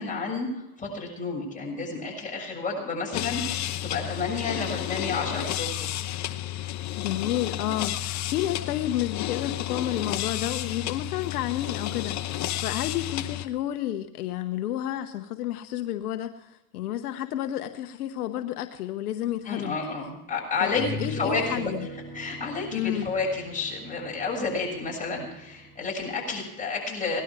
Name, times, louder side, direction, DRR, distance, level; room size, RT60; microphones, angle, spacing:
voice 1, 0.0-5.9 19.5-21.6 22.1-27.2, left 4 dB, 15° left, -2 dB, 6.9 m, -31 dB
sound 1, 3.1-13.5, left 13 dB, 35° left, 0.9 m, -32 dB
voice 2, 7.0-19.7 20.6-21.9 22.7-23.1, left 12 dB, 80° left, 8 dB, 1.1 m, -31 dB
sound 2, 19.5-19.6 20.5-25.8, right 1 dB, ahead, 5.0 m, -39 dB
18.5 x 11.5 x 4.8 m, 0.92 s
hypercardioid pair, 105°, 45 cm